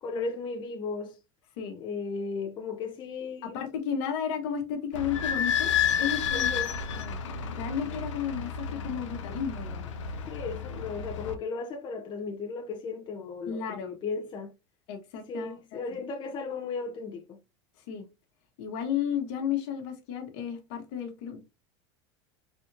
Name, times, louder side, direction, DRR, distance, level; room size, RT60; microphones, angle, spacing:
voice 1, 0.0-1.2 1.8-3.6 6.3-6.7 10.3-14.6 15.3-17.4, left 4 dB, 30° left, 0.5 m, -35 dB
voice 2, 3.4-5.7 6.0-6.5 6.9-7.2 7.5-9.9 13.5-13.9 14.9-15.8 17.9-18.1 18.6-21.4, left 8 dB, 65° left, 1.0 m, -33 dB
Idling / Squeak, 4.9-11.3, left 8 dB, 85° left, 0.6 m, -31 dB
3.4 x 2.8 x 2.6 m
hypercardioid pair, 100°, 15 cm